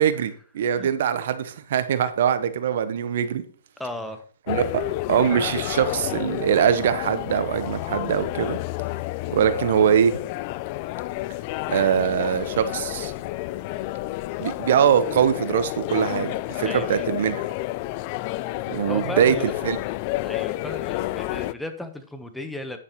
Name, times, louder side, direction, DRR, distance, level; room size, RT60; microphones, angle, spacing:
voice 1, 0.0-3.4 4.5-4.8 5.1-8.6 9.3-10.2 11.7-13.1 14.4-17.4 18.7-19.3 19.6-19.8, right 8 dB, 60° right, 12 dB, 1.1 m, -22 dB
voice 2, 3.8-4.2 16.6-17.2 18.9-19.4 20.2-22.8, left 1 dB, 5° left, 6 dB, 1.2 m, -35 dB
Generic Crowd Background Noise, 4.5-21.5, left 17 dB, 40° left, 0.4 m, -30 dB
10.0 x 9.7 x 3.1 m, 0.43 s
hypercardioid pair, 130°, 0 cm